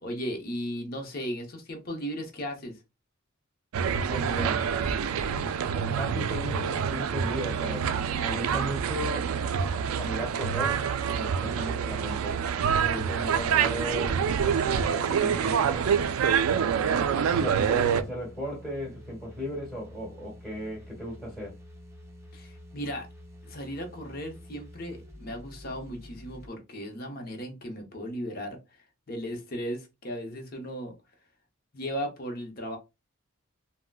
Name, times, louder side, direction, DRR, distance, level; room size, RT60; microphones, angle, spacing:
voice 1, 0.0-2.8 22.3-23.1 23.5-28.6 29.1-30.9 31.7-32.8, equal, 45° left, 0.8 m, -36 dB
sound 1, 3.7-18.0, right 7 dB, 80° right, 0.3 m, -26 dB
voice 2, 3.9-4.7 5.7-7.9 8.2-9.3 9.9-12.4 12.8-16.0 17.4-21.6, equal, 5° left, 1.3 m, -36 dB
sound 2, 16.8-26.5, equal, 15° right, 0.7 m, -48 dB
3.7 x 2.1 x 2.2 m
head